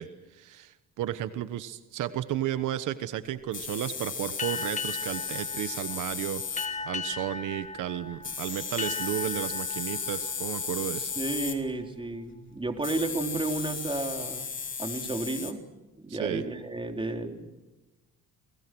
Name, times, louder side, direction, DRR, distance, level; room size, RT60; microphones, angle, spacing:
voice 1, 0.0-11.1 16.1-16.4, right 12 dB, 85° right, 12 dB, 1.2 m, -33 dB
sound 1, 3.5-6.7 8.2-11.6 12.8-15.5, left 6 dB, 40° left, 3.4 m, -35 dB
sound 2, 4.4-11.7, left 4 dB, 25° left, 2.1 m, -38 dB
voice 2, 11.2-14.5 14.8-15.6 16.0-17.5, right 2 dB, 15° right, 4 dB, 3.7 m, -32 dB
29.5 x 20.5 x 6.2 m, 1.1 s
cardioid pair, 90°, 30 cm